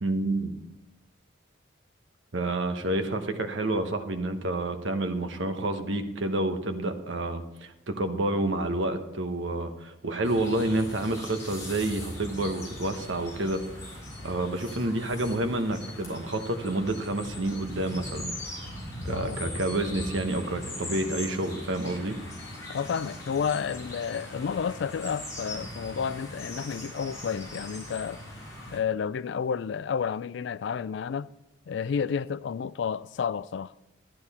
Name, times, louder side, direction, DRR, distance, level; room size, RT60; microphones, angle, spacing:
voice 1, 0.0-0.5 2.3-18.4 19.0-22.2, right 2 dB, 75° right, 1.0 m, -29 dB
sound 1, 10.2-28.8, left 1 dB, 15° left, 4.3 m, -40 dB
voice 2, 22.7-28.3 28.7-31.3 31.7-33.7, left 6 dB, 65° left, 0.3 m, -31 dB
12.0 x 10.5 x 4.2 m
head